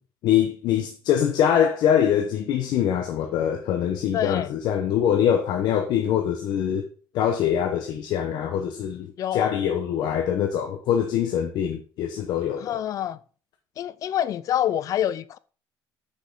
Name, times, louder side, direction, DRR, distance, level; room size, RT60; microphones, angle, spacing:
voice 1, 0.2-6.9 7.1-12.8, left 9 dB, 65° left, 0.8 m, -23 dB
voice 2, 4.1-4.5 9.2-9.5 12.6-13.2 13.8-15.4, left 11 dB, 45° left, 0.4 m, -26 dB
6.3 x 5.4 x 3.9 m
cardioid pair, 140°, 8 cm